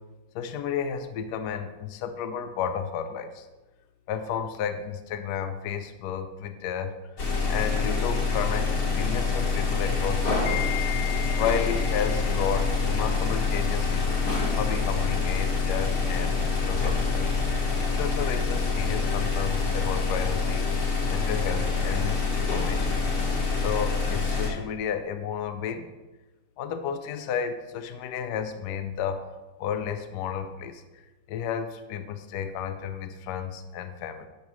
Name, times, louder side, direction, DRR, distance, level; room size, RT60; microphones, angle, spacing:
voice 1, 0.3-3.5 4.1-6.9 7.5-14.1 14.6-17.3 18.0-20.7 21.1-23.0 23.6-25.9 26.6-29.3 29.6-30.8 31.3-34.3, left 8 dB, 70° left, 8 dB, 1.0 m, -32 dB
sound 1, 7.2-24.5, left 4 dB, 45° left, 1.6 m, -26 dB
10.0 x 6.8 x 3.0 m, 1.1 s
omnidirectional pair, 2.4 m